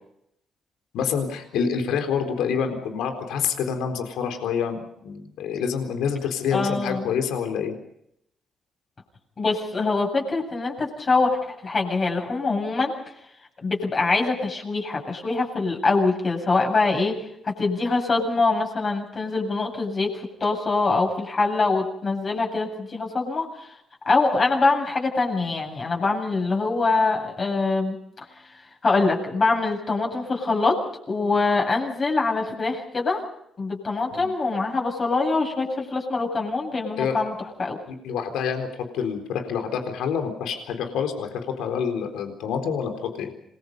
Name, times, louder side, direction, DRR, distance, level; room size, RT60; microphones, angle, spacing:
voice 1, 0.9-7.7 34.1-34.3 37.0-37.2 37.9-38.7 38.9-42.9 43.2-43.3, left 7 dB, 85° left, 5 dB, 4.0 m, -27 dB
voice 2, 6.5-7.1 9.4-12.9 13.6-17.1 17.4-20.1 20.4-23.7 24.0-28.0 28.8-30.8 31.1-33.2 33.6-37.3 37.6-37.8, left 3 dB, 40° left, 1 dB, 8.0 m, -24 dB
27.0 x 21.5 x 5.5 m, 0.75 s
cardioid pair, 90°, 0 cm